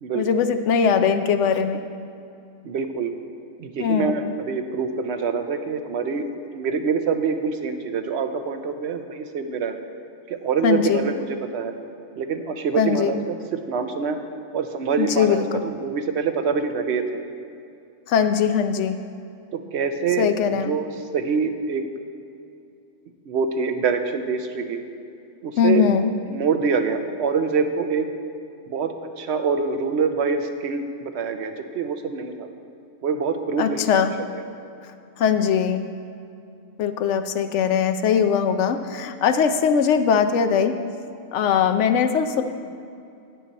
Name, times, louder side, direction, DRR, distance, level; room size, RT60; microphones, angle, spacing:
voice 1, 0.1-1.8 3.8-4.2 10.6-11.0 12.8-13.2 15.0-15.6 18.1-19.0 20.2-20.7 25.6-26.1 33.6-34.1 35.2-35.9 36.8-40.7 41.3-42.4, left 7 dB, 70° left, 8 dB, 0.9 m, -20 dB
voice 2, 2.6-3.1 3.6-6.3 6.5-9.7 10.3-11.7 12.2-14.2 14.5-17.2 19.5-20.3 20.6-21.8 23.3-24.8 25.4-25.8 26.3-28.1 28.7-32.5 33.0-34.1 34.3-34.4, right 5 dB, 65° right, 7 dB, 0.9 m, -25 dB
12.0 x 8.8 x 4.1 m, 2.6 s
omnidirectional pair, 1.3 m